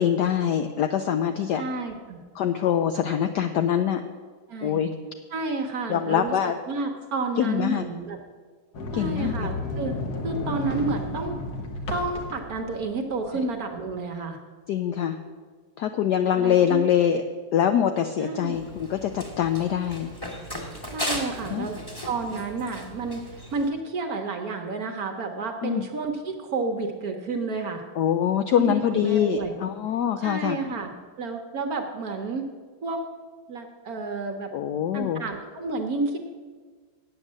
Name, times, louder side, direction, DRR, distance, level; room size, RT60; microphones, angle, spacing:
voice 1, 0.0-1.6 2.4-4.0 4.6-4.9 5.9-6.5 7.4-7.8 8.9-9.5 14.7-15.2 15.8-17.2 17.5-20.1 21.5-21.7 25.6-25.8 28.0-30.6 34.5-35.2, left 9 dB, 85° left, 8 dB, 0.9 m, -24 dB
voice 2, 1.6-2.2 4.5-4.8 5.3-6.3 6.7-8.2 8.9-10.0 10.2-11.4 11.9-14.4 16.3-16.8 18.2-18.6 20.9-21.7 22.1-27.8 28.6-29.5 30.2-30.9 31.2-32.5 32.8-33.0 33.5-34.5 34.9-36.2, right 3 dB, 55° right, 4 dB, 1.1 m, -30 dB
Sliding door, 8.7-13.6, left 2 dB, 55° left, 1.4 m, -32 dB
Run, 18.5-23.7, equal, 15° left, 1.1 m, -36 dB
8.7 x 8.0 x 7.4 m, 1.5 s
omnidirectional pair, 2.3 m